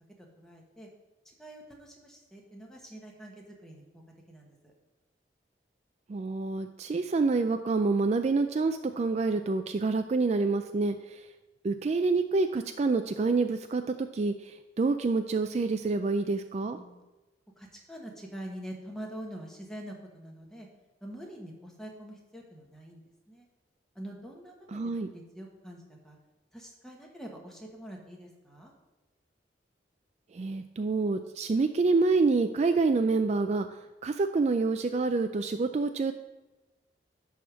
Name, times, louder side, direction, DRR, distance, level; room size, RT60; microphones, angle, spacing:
voice 1, 0.4-0.9 1.2-4.0 4.3-4.7 16.7-17.0 17.6-20.7 21.0-23.5 23.9-26.2 26.5-28.7, right 1 dB, 5° left, -1 dB, 1.2 m, -45 dB
voice 2, 6.1-11.3 11.6-16.8 24.7-25.1 30.3-33.7 34.0-36.1, right 3 dB, 40° right, 7 dB, 0.3 m, -27 dB
10.5 x 3.5 x 6.1 m, 1.1 s
head